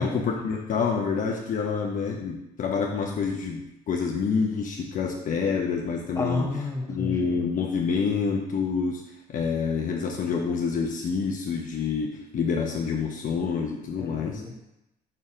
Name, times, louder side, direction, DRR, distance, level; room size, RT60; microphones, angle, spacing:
voice 1, 0.0-6.5 6.9-9.0 9.3-14.4, left 5 dB, 50° left, 0 dB, 1.0 m, -27 dB
voice 2, 6.1-7.5 14.0-14.7, left 2 dB, 15° left, 0 dB, 1.5 m, -31 dB
6.0 x 5.4 x 4.9 m, 0.88 s
cardioid pair, 110°, 17 cm